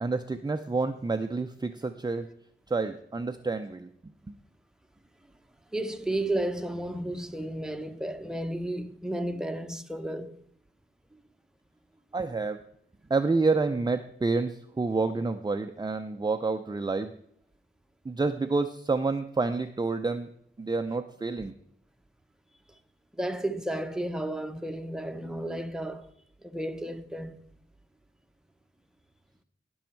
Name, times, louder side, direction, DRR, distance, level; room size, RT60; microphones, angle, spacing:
voice 1, 0.0-2.3 2.7-3.9 4.3-4.4 12.1-12.6 13.1-17.1 18.1-20.3 20.6-21.5, right 3 dB, 20° right, 0.5 m, -28 dB
voice 2, 5.7-10.4 21.4-21.5 23.2-26.1 26.4-27.4, right 1 dB, 5° right, 0.9 m, -33 dB
18.0 x 6.3 x 4.5 m
wide cardioid pair, 100°, 20 cm